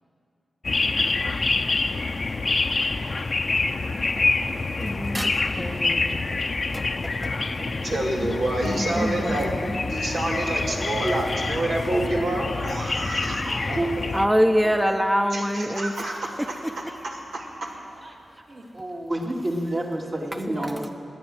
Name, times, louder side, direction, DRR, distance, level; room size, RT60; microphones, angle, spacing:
sound 1, 0.6-14.3, left 3 dB, 50° left, 0.7 m, -26 dB
voice 1, 4.8-7.3 8.2-8.3 8.6-9.9 14.1-17.0 20.3-20.9, equal, 10° right, 7 dB, 0.8 m, -26 dB
voice 2, 7.6-9.5 9.9-14.1 15.3-16.1 17.3-17.5, right 1 dB, 85° right, -4 dB, 2.5 m, -27 dB
voice 3, 18.5-20.9, right 1 dB, 45° right, 0 dB, 2.4 m, -30 dB
18.0 x 9.6 x 7.8 m, 2.6 s
cardioid pair, 45°, 0 cm